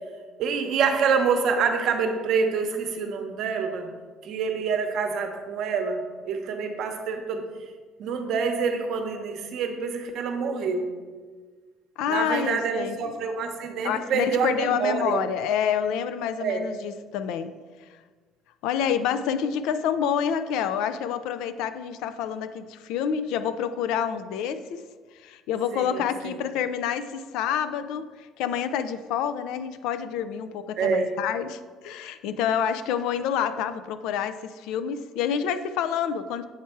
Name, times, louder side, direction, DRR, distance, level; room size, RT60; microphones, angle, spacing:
voice 1, 0.4-3.9 4.2-7.4 8.0-10.9 12.1-15.2 16.4-16.6 25.7-26.3 30.8-31.1, right 5 dB, 60° right, 5 dB, 0.8 m, -26 dB
voice 2, 12.0-13.0 13.8-17.5 18.6-24.8 25.1-36.4, left 8 dB, 80° left, 11 dB, 0.4 m, -28 dB
8.0 x 3.2 x 4.5 m, 1.4 s
cardioid pair, 120°, 0 cm